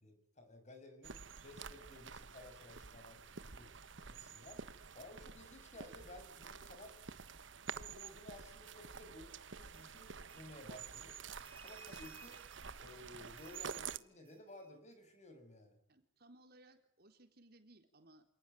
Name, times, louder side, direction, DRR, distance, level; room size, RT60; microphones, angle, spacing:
voice 1, 0.0-3.7 4.0-7.1 7.7-11.2 11.6-12.4 12.8-15.8, left 1 dB, 35° left, 8 dB, 6.6 m, -56 dB
sound 1, 1.0-14.0, right 6 dB, 70° right, 1.2 m, -49 dB
sound 2, 9.7-14.9, right 4 dB, 25° right, 2.0 m, -61 dB
voice 2, 15.9-18.2, right 1 dB, 50° right, 6 dB, 4.0 m, -63 dB
28.0 x 19.0 x 9.3 m, 0.63 s
head